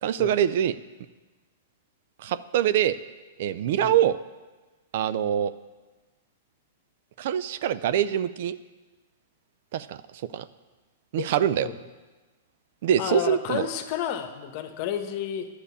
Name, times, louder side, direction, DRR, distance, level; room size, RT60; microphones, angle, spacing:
voice 1, 0.0-0.8 2.2-3.0 3.4-4.2 4.9-5.5 7.2-8.6 9.7-10.0 10.3-10.5 11.1-11.7 12.8-13.7, right 10 dB, 60° right, 14 dB, 0.5 m, -24 dB
voice 2, 13.0-15.5, left 10 dB, 45° left, 8 dB, 1.2 m, -31 dB
10.0 x 6.7 x 8.5 m, 1.2 s
hypercardioid pair, 110°, 0 cm